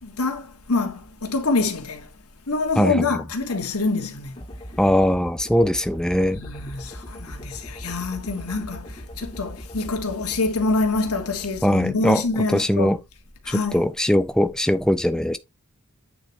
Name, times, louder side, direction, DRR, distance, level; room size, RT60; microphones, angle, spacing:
voice 1, 0.0-2.1 2.5-4.4 6.3-13.0 13.4-13.9, left 3 dB, 85° left, 1.6 m, -26 dB
sound 1, 4.4-12.6, equal, 20° left, 0.8 m, -40 dB
voice 2, 4.8-6.4 11.6-12.2 12.5-13.0 13.5-15.4, equal, 5° left, 0.4 m, -20 dB
8.7 x 4.1 x 3.4 m
head